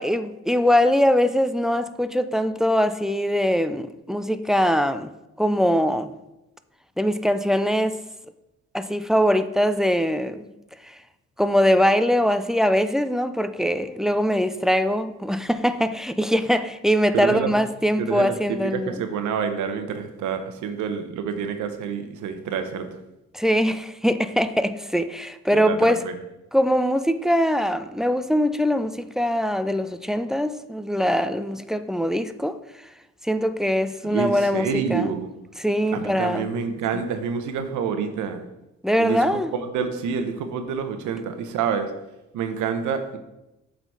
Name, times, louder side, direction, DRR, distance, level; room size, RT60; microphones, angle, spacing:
voice 1, 0.0-5.1 5.4-6.1 7.0-8.0 8.7-10.5 10.8-11.0 11.4-19.0 23.3-26.0 26.5-32.6 33.2-35.1 35.6-36.5 36.9-37.0 38.8-39.5, equal, ahead, 0.4 m, -22 dB
voice 2, 17.1-17.6 18.0-22.9 25.5-26.2 34.0-35.3 35.9-38.4 39.0-39.2 39.5-41.9 42.3-43.2, right 6 dB, 80° right, 0.9 m, -27 dB
7.9 x 3.9 x 4.7 m
cardioid pair, 80°, 30 cm